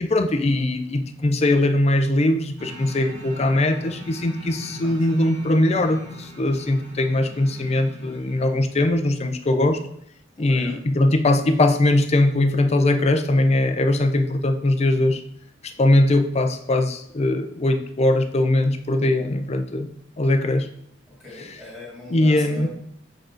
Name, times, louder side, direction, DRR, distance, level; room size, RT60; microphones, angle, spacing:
voice 1, 0.0-9.8 10.4-15.2 15.6-19.9 20.2-20.7 22.1-22.7, left 1 dB, 35° left, 7 dB, 0.5 m, -21 dB
sound 1, 2.6-8.8, equal, 90° right, 1.8 m, -40 dB
voice 2, 10.3-10.8 15.8-15.9 21.1-22.7, left 1 dB, 5° right, -7 dB, 2.5 m, -40 dB
7.0 x 3.8 x 3.9 m, 0.74 s
head